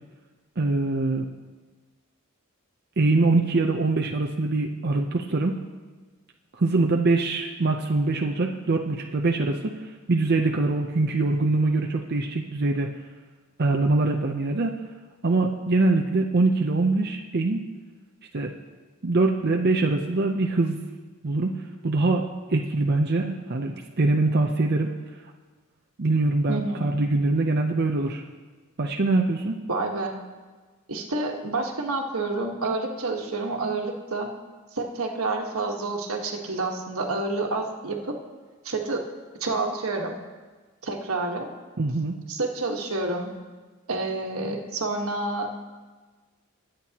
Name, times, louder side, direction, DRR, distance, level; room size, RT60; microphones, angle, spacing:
voice 1, 0.6-1.3 3.0-5.6 6.6-9.7 10.1-12.9 13.6-14.8 15.2-17.6 18.3-18.5 19.0-20.8 21.2-21.6 21.8-24.9 26.0-28.2 28.8-29.6 41.8-42.1, right 2 dB, 50° right, 2 dB, 0.7 m, -23 dB
voice 2, 26.5-26.9 29.7-30.1 30.9-34.3 34.7-38.1 38.6-39.0 39.4-40.2 40.8-41.5 42.3-43.3 43.9-45.5, right 3 dB, 85° right, 2 dB, 1.4 m, -28 dB
21.5 x 8.9 x 2.9 m, 1.4 s
head